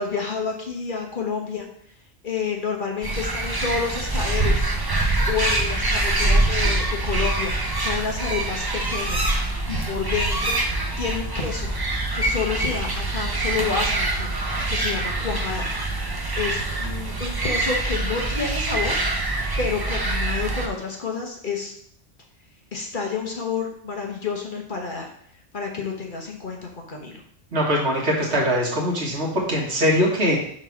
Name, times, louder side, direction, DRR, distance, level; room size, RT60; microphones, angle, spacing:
voice 1, 0.0-1.7 2.2-4.7 5.3-7.5 7.8-9.3 9.7-10.6 11.0-11.7 12.1-14.3 14.7-15.7 16.4-19.0 19.6-21.7 22.7-25.1 25.5-27.2, left 5 dB, 45° left, 1 dB, 1.1 m, -29 dB
sound 1, 3.0-20.7, right 2 dB, 20° right, 0.7 m, -24 dB
voice 2, 27.5-30.4, equal, 65° right, -3 dB, 2.0 m, -22 dB
5.3 x 4.0 x 5.9 m, 0.64 s
omnidirectional pair, 1.2 m